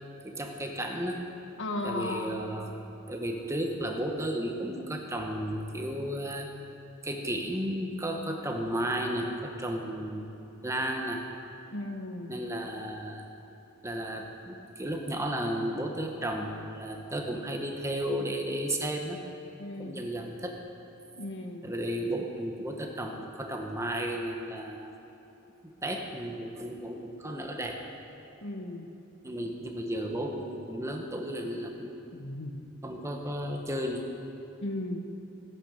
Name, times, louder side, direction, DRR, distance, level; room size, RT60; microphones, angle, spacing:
voice 1, 0.2-1.2 1.8-2.7 3.1-6.5 7.0-10.3 10.6-11.2 12.3-13.2 13.8-19.2 19.8-20.6 21.6-24.9 25.6-27.8 29.2-32.0 32.8-34.1, right 1 dB, 15° right, 2 dB, 1.2 m, -33 dB
voice 2, 1.6-2.5 11.7-12.3 19.6-20.0 21.2-21.7 28.4-28.9 32.1-32.6 34.6-35.0, left 2 dB, 60° left, 4 dB, 1.3 m, -36 dB
16.5 x 10.0 x 6.6 m, 2.9 s
head